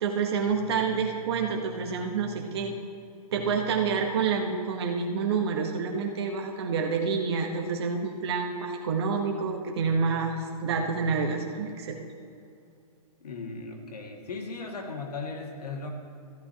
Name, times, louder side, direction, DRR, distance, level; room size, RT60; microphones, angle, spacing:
voice 1, 0.0-2.7 3.3-12.0, right 5 dB, 40° right, 2 dB, 1.0 m, -28 dB
voice 2, 13.2-15.9, left 3 dB, 85° left, 2 dB, 1.9 m, -37 dB
13.5 x 11.5 x 2.8 m, 2.5 s
hypercardioid pair, 170°, 20 cm